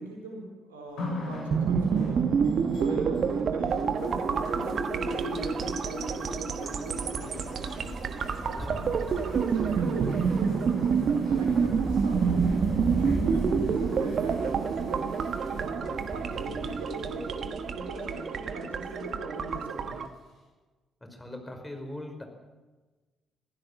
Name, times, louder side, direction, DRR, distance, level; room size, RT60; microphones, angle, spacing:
voice 1, 0.0-2.4 2.8-7.5 8.4-8.9 9.2-10.9 11.2-20.0, right 2 dB, 80° right, 1 dB, 4.2 m, -40 dB
sound 1, 1.0-3.3 3.7-18.4 19.3-19.4, left 1 dB, 60° left, 8.0 m, -41 dB
Wind, 1.1-1.4 1.8-1.9 2.2-5.7 6.0-18.2 18.4-18.5, right 1 dB, 5° right, 5.1 m, -39 dB
sound 2, 1.5-20.1, right 6 dB, 50° right, 1.4 m, -28 dB
voice 2, 21.1-22.2, left 1 dB, 15° left, 4 dB, 5.2 m, -40 dB
24.5 x 16.0 x 7.5 m, 1.2 s
figure-of-eight pair, 45°, 0 cm